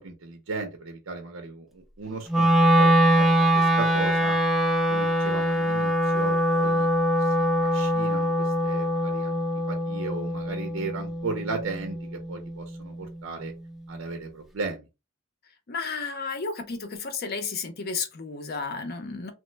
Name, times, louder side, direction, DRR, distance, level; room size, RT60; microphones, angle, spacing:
voice 1, 0.0-4.4 4.9-6.9 7.2-13.5 13.9-14.9, right 3 dB, 85° right, 0.6 m, -36 dB
Wind instrument woodwind instrument, 2.3-12.5, equal, ahead, 0.4 m, -23 dB
voice 2, 15.7-19.3, left 4 dB, 50° left, 0.6 m, -32 dB
3.0 x 2.1 x 3.2 m
head